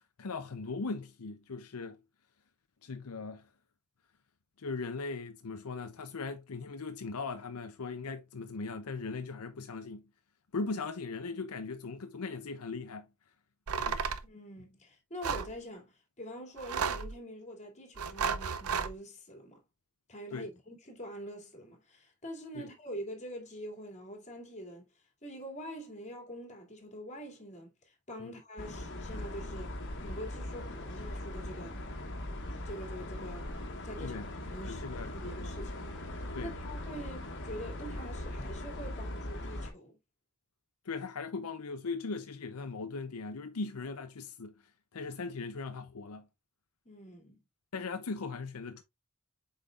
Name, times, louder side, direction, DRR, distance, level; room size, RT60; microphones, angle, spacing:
voice 1, 0.2-2.0 2.8-3.5 4.6-10.1 10.5-13.1 13.8-14.0 20.3-20.5 22.5-22.7 28.2-28.3 34.0-34.3 34.7-35.1 36.3-36.5 40.8-44.5 44.9-46.3 47.7-48.8, left 4 dB, 75° left, 0.7 m, -39 dB
sound 1, 13.7-14.2 15.2-15.5 16.6-17.2 18.0-18.9, right 6 dB, 75° right, 0.6 m, -33 dB
voice 2, 14.2-19.6 20.1-24.8 25.2-29.8 30.0-31.8 32.6-33.5 33.8-40.0 46.8-47.4, equal, 30° left, 2.6 m, -45 dB
sound 2, 28.6-39.7, left 1 dB, 60° left, 1.6 m, -40 dB
7.8 x 5.2 x 2.4 m
head